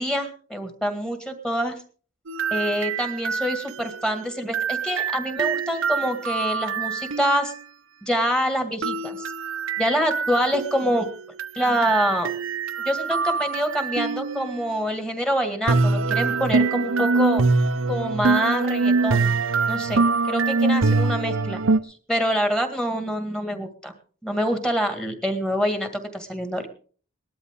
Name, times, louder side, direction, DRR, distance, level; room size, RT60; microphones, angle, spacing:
voice 1, 0.0-1.8 2.5-7.5 8.0-9.3 9.8-11.1 11.5-12.3 12.8-17.4 17.9-19.3 19.7-23.9 24.2-26.7, equal, 5° left, 6 dB, 2.0 m, -26 dB
sound 1, 2.3-7.6 8.8-14.6 15.7-21.8, right 4 dB, 65° right, 0.8 m, -24 dB
19.0 x 12.5 x 3.7 m, 0.43 s
head